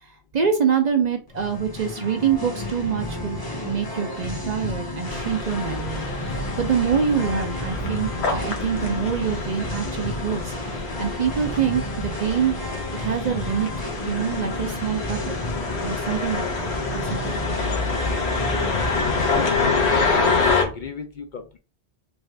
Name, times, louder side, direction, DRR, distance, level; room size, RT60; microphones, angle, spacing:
voice 1, 0.0-12.6 13.0-13.7 14.1-15.4 15.8-17.4, right 7 dB, 50° right, 5 dB, 0.6 m, -26 dB
Singing, 1.3-20.4, left 2 dB, 25° left, 0.8 m, -32 dB
sound 1, 5.0-20.6, left 4 dB, 85° left, 1.2 m, -27 dB
voice 2, 18.4-19.7 20.4-21.6, left 5 dB, 60° left, 6 dB, 0.6 m, -37 dB
3.5 x 2.5 x 3.2 m, 0.32 s
omnidirectional pair, 1.1 m